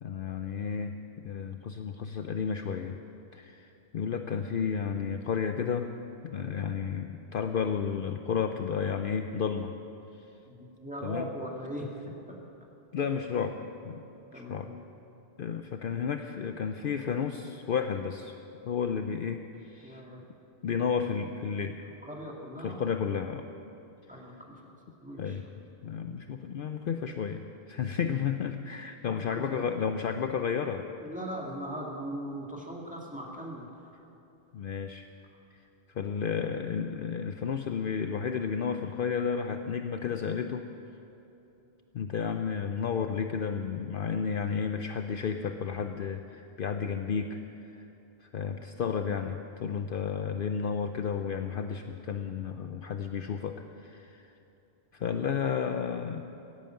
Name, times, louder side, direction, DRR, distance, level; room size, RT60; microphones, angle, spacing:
voice 1, 0.0-3.0 3.3-5.9 6.2-9.7 11.0-11.3 12.9-13.6 13.8-14.0 14.3-14.7 15.4-18.4 18.6-20.0 20.6-21.8 22.6-23.4 25.2-25.4 25.8-30.9 34.5-35.0 35.5-35.6 35.9-40.7 41.9-47.4 47.7-47.9 48.2-54.3 54.9-56.2, left 6 dB, 60° left, 7 dB, 0.7 m, -32 dB
voice 2, 10.5-11.9 14.3-14.8 19.8-20.2 22.1-22.8 24.1-25.4 29.1-29.8 31.0-33.9, equal, 5° right, -2 dB, 2.1 m, -40 dB
16.0 x 9.2 x 8.9 m, 2.9 s
omnidirectional pair, 1.1 m